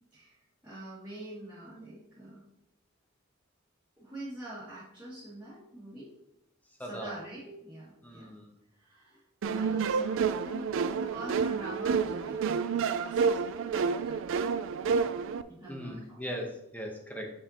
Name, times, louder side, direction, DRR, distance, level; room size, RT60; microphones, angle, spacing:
voice 1, 0.6-2.4 4.0-6.1 6.9-8.3 8.9-10.7 11.0-13.2 13.7-14.2 15.5-16.2, right 1 dB, 10° right, -12 dB, 2.0 m, -44 dB
voice 2, 6.8-7.1 8.0-8.6 15.7-17.3, equal, 10° left, 1 dB, 0.8 m, -39 dB
sound 1, 9.4-15.4, right 5 dB, 65° right, 0.3 m, -29 dB
6.5 x 5.5 x 2.9 m, 0.82 s
head